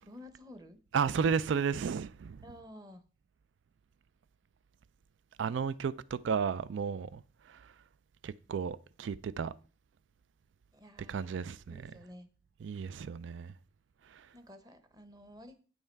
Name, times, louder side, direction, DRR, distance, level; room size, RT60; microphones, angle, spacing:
voice 1, 0.0-0.8 2.4-3.0 10.7-11.4 11.7-12.3 14.3-15.6, left 1 dB, 20° right, 0.9 m, -52 dB
voice 2, 0.9-2.4 5.4-7.2 7.5-7.7 8.2-9.5 11.1-11.9 12.6-13.5 14.1-14.3, right 6 dB, 80° right, 0.4 m, -33 dB
9.3 x 5.6 x 4.5 m
head